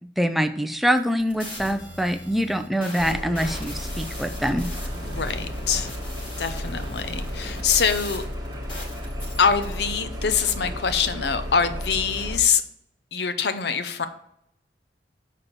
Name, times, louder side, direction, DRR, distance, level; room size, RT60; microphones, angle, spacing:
voice 1, 0.2-4.7, equal, ahead, 8 dB, 0.4 m, -24 dB
sound 1, 0.9-9.8, equal, 25° left, 2.1 m, -39 dB
sound 2, 3.0-12.4, left 1 dB, 20° right, 1.2 m, -33 dB
voice 2, 5.0-5.9 6.4-8.2 9.4-12.6 13.1-14.1, left 6 dB, 65° left, 10 dB, 0.6 m, -24 dB
7.1 x 4.2 x 6.7 m, 0.75 s
head